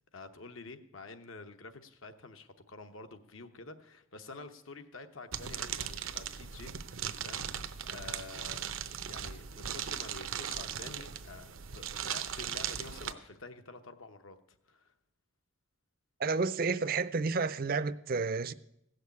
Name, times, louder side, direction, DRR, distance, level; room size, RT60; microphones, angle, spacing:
voice 1, 0.1-8.7 9.0-14.9, left 3 dB, 80° left, 1.0 m, -49 dB
sound 1, 5.3-13.1, right 9 dB, 85° right, 0.7 m, -38 dB
voice 2, 16.2-18.5, right 4 dB, 45° right, 0.4 m, -31 dB
16.0 x 6.5 x 8.4 m
head